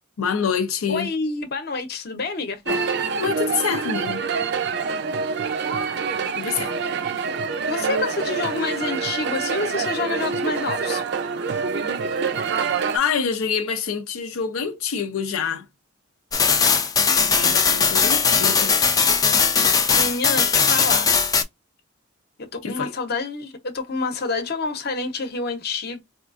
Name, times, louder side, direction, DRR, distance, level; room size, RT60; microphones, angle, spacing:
voice 1, 0.2-1.1 2.7-2.8 3.2-4.2 6.4-6.7 12.9-15.6 17.2-18.7 22.6-22.9, left 6 dB, 85° left, 0.5 m, -26 dB
voice 2, 0.9-2.6 7.7-11.0 19.9-21.1 22.4-26.0, left 3 dB, 50° left, 0.8 m, -28 dB
sound 1, 2.7-13.0, right 5 dB, 55° right, 0.5 m, -26 dB
sound 2, 16.3-21.4, left 5 dB, 15° left, 0.4 m, -19 dB
4.3 x 2.4 x 2.4 m
head